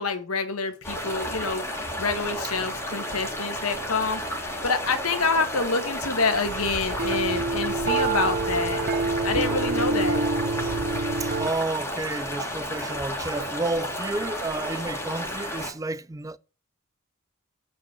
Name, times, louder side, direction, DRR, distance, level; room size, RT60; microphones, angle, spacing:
voice 1, 0.0-1.6 2.0-8.9 9.2-10.2, left 4 dB, 85° left, 1.7 m, -27 dB
sound 1, 0.8-15.7, equal, 10° left, 2.4 m, -32 dB
sound 2, 6.5-11.5, right 3 dB, 45° right, 0.8 m, -27 dB
voice 2, 11.2-16.4, right 2 dB, 15° right, 0.4 m, -31 dB
8.3 x 5.5 x 6.8 m
head